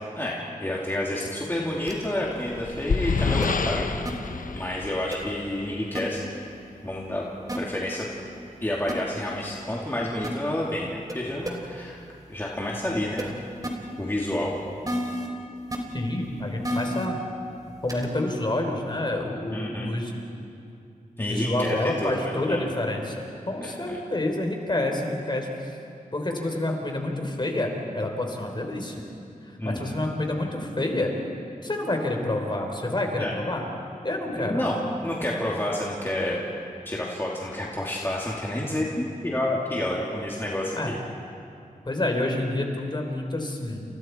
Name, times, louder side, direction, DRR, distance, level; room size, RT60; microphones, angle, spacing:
voice 1, 0.1-4.0 4.5-6.2 6.8-7.3 7.6-8.1 8.6-12.0 12.3-13.4 14.0-14.5 19.5-19.9 21.2-21.8 22.0-22.6 23.6-24.0 29.6-30.0 33.2-33.4 34.4-34.8 35.0-36.4 36.8-41.0, left 1 dB, 15° left, -4 dB, 2.8 m, -29 dB
sound 1, 1.9-2.1 3.4-3.5 4.0-4.1 5.1-5.2 5.9-6.0 7.5-7.6 8.9-9.0 10.2-10.3 11.1-11.2 11.4-11.5 13.2-13.3 13.6-13.7 14.8-15.3 15.7-15.8 16.6-17.1 17.9-18.1, equal, 25° right, 3.4 m, -29 dB
sound 2, 2.1-5.7, left 4 dB, 75° left, 1.0 m, -28 dB
voice 2, 15.9-17.2 17.8-20.1 21.2-25.7 26.1-29.0 29.6-31.1 31.6-33.6 34.0-34.6 40.8-40.9 41.9-43.8, left 1 dB, 35° left, 2 dB, 3.8 m, -28 dB
29.5 x 29.5 x 4.6 m, 2.6 s
wide cardioid pair, 100°, 14 cm